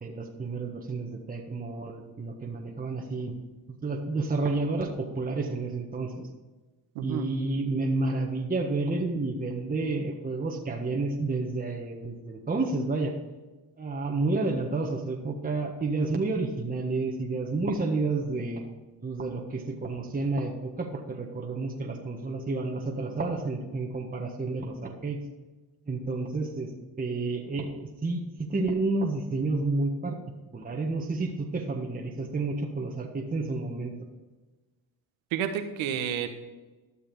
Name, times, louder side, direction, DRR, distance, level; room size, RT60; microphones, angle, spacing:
voice 1, 0.0-3.3 3.8-6.3 7.0-13.1 13.8-18.6 19.0-25.2 25.9-26.7 27.0-30.2 30.5-33.9, right 3 dB, 20° right, 0 dB, 1.5 m, -30 dB
voice 2, 6.9-7.3 35.3-36.3, right 8 dB, 75° right, 7 dB, 1.4 m, -30 dB
12.5 x 6.6 x 5.3 m, 1.2 s
supercardioid pair, 80°, 47 cm